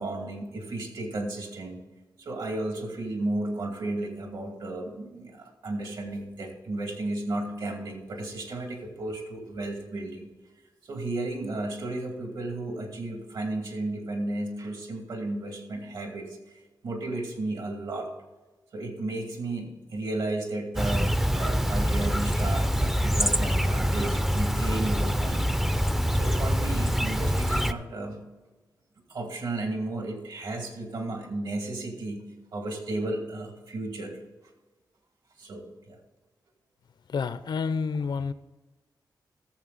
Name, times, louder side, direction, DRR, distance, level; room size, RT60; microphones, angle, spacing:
voice 1, 0.0-1.8 2.2-10.3 10.8-16.4 16.8-18.1 18.7-25.5 26.1-28.2 29.1-32.2 32.5-34.2 35.4-36.0, right 2 dB, 75° right, 3 dB, 2.5 m, -33 dB
Chirp tweet, 20.8-27.7, equal, 5° right, 0.4 m, -25 dB
voice 2, 37.1-38.3, left 5 dB, 80° left, 13 dB, 0.6 m, -29 dB
14.5 x 7.4 x 4.0 m, 1.2 s
wide cardioid pair, 160°, 8 cm